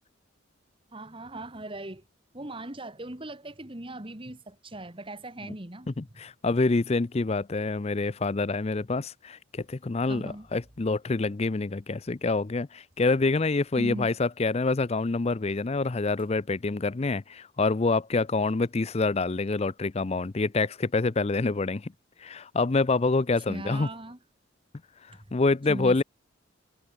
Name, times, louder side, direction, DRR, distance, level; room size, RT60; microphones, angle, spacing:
voice 1, 0.9-2.0 2.3-5.9 10.1-10.5 13.8-14.1 23.5-24.2 25.1-25.2 25.7-26.0, right 1 dB, 25° right, 1.7 m, -39 dB
voice 2, 6.0-21.9 22.2-23.9 25.3-26.0, left 3 dB, 30° left, 0.5 m, -26 dB
head